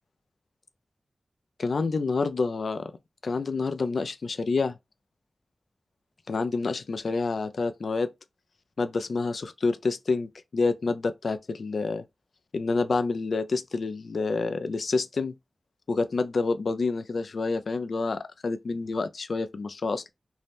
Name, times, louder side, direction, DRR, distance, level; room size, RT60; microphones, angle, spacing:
voice 1, 1.6-2.9 3.2-4.7 6.3-8.1 8.8-12.0 12.5-15.4 15.9-20.1, left 4 dB, 75° left, 0.3 m, -28 dB
2.7 x 2.0 x 3.3 m
cardioid pair, 55°, 0 cm